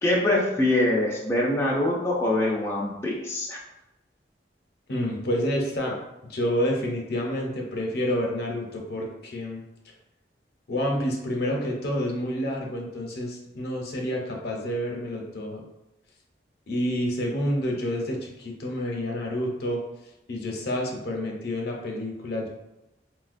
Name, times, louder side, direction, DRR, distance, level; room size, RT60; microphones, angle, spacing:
voice 1, 0.0-3.6, left 1 dB, 15° left, -4 dB, 0.4 m, -24 dB
voice 2, 4.9-9.6 10.7-15.6 16.7-19.8 20.3-22.5, equal, 60° left, 0 dB, 0.6 m, -29 dB
4.2 x 2.1 x 2.5 m, 0.92 s
head